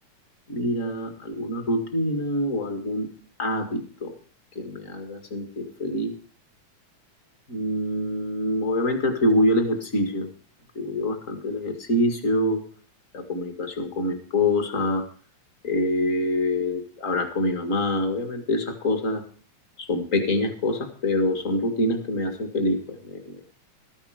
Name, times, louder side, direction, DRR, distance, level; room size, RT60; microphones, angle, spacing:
voice 1, 0.5-3.1 3.4-4.1 4.6-6.1 7.5-10.3 10.8-12.6 13.1-15.0 15.6-19.2 19.8-23.3, left 1 dB, 30° left, 6 dB, 1.8 m, -25 dB
13.5 x 10.5 x 4.9 m, 0.42 s
omnidirectional pair, 3.5 m